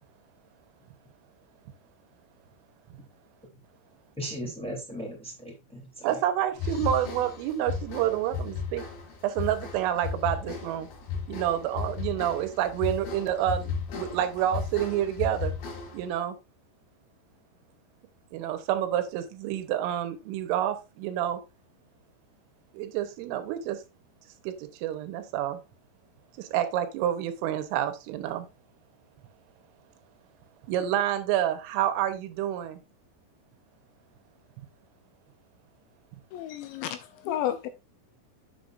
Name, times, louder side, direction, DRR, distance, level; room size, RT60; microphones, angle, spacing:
voice 1, 4.2-6.2, equal, ahead, 1.6 m, -37 dB
voice 2, 6.0-8.8 9.2-10.9 11.3-15.5 15.9-16.4 18.3-21.4 22.7-23.8 24.4-24.5 24.8-25.6 26.4-28.5 30.7-32.8, right 11 dB, 90° right, 3.6 m, -28 dB
sound 1, 6.6-16.1, left 6 dB, 55° left, 3.4 m, -35 dB
voice 3, 36.3-37.7, left 11 dB, 85° left, 2.7 m, -32 dB
7.9 x 7.8 x 2.6 m
omnidirectional pair, 5.6 m